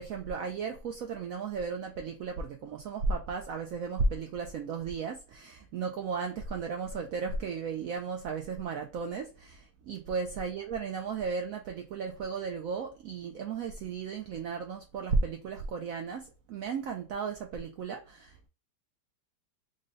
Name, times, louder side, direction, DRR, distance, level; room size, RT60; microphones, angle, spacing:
voice 1, 0.0-18.5, right 4 dB, 80° right, 0.7 m, -34 dB
3.8 x 2.1 x 3.8 m
omnidirectional pair, 1.9 m